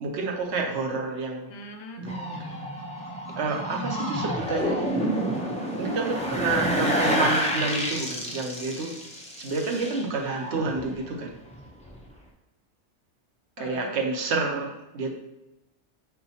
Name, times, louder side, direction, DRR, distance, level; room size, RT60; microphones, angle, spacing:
voice 1, 0.0-1.5 2.0-2.1 3.4-4.9 5.7-8.9 9.4-11.3 13.6-15.1, right 3 dB, 70° right, 2 dB, 1.0 m, -29 dB
voice 2, 1.5-2.7 13.6-14.0, left 2 dB, 70° left, 4 dB, 0.9 m, -43 dB
sound 1, 2.1-11.2 11.5-12.0, equal, 10° left, 0.4 m, -29 dB
4.1 x 3.9 x 2.8 m, 0.95 s
omnidirectional pair, 1.2 m